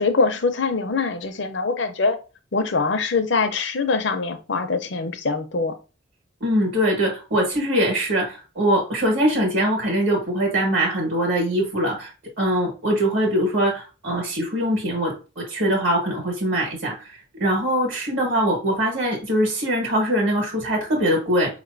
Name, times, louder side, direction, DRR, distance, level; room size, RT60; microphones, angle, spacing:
voice 1, 0.0-2.2 2.5-5.7, left 4 dB, 60° left, 0.6 m, -23 dB
voice 2, 6.4-12.1 12.4-17.1 17.4-21.6, equal, 70° right, 1.5 m, -22 dB
4.9 x 3.0 x 2.6 m
head